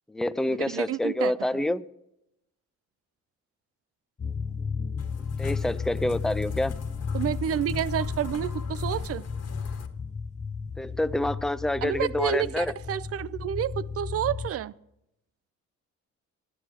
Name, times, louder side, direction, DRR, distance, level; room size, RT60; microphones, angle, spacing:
voice 1, 0.1-1.9 5.4-6.7 10.8-12.7, left 1 dB, ahead, 0.4 m, -27 dB
voice 2, 0.6-1.3 7.1-9.3 11.8-14.7, right 10 dB, 50° right, 0.5 m, -29 dB
sound 1, 4.2-14.5, left 5 dB, 25° left, 0.7 m, -33 dB
sound 2, 5.0-9.9, left 4 dB, 55° left, 1.6 m, -44 dB
11.5 x 9.6 x 6.1 m
cardioid pair, 90°, 30 cm